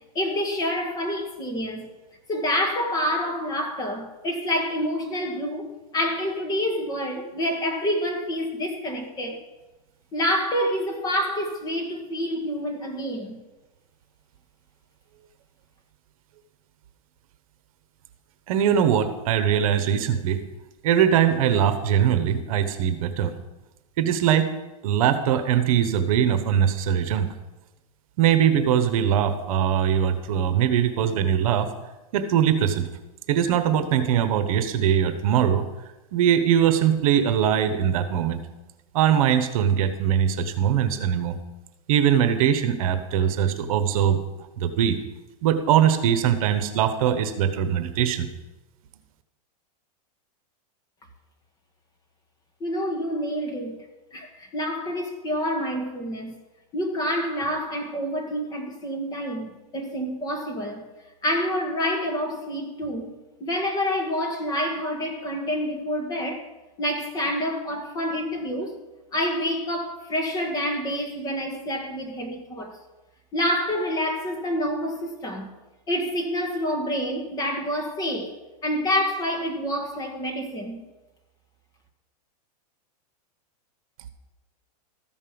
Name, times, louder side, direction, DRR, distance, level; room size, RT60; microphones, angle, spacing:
voice 1, 0.2-1.9 2.3-5.7 5.9-9.4 10.1-13.4 52.6-53.8 54.1-56.4 56.7-60.8 61.2-66.5 66.8-68.8 69.1-72.8 73.3-75.5 75.9-78.3 78.6-80.8, equal, 20° left, 1.8 m, -27 dB
voice 2, 18.5-20.4 20.8-23.3 24.0-24.5 24.8-27.3 28.2-31.7 32.1-32.9 33.3-35.6 36.1-38.4 38.9-41.4 41.9-44.2 44.6-45.0 45.4-48.3, right 9 dB, 60° right, 1.1 m, -21 dB
14.0 x 5.4 x 6.9 m
supercardioid pair, 150°, 20 cm